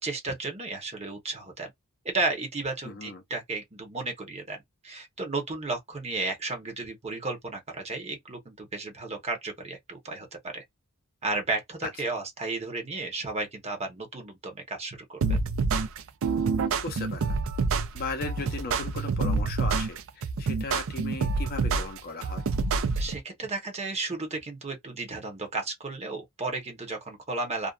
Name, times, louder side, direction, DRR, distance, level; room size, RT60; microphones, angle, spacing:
voice 1, 0.0-1.7 2.0-10.6 11.2-15.2 22.9-27.7, right 3 dB, 30° right, 0.9 m, -33 dB
voice 2, 2.8-3.2 11.8-11.9 16.8-17.4 17.9-22.4, left 3 dB, 45° left, 0.6 m, -37 dB
sound 1, 15.2-23.2, right 4 dB, 65° right, 0.4 m, -27 dB
2.5 x 2.3 x 2.3 m
head